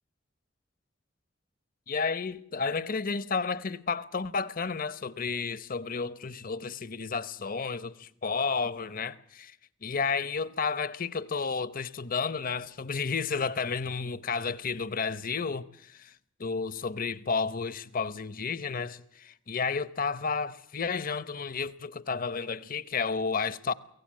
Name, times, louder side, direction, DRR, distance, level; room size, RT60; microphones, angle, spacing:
voice 1, 1.9-9.6 9.8-16.1 16.4-23.7, left 5 dB, 45° left, 0.8 m, -32 dB
23.5 x 17.5 x 7.6 m
head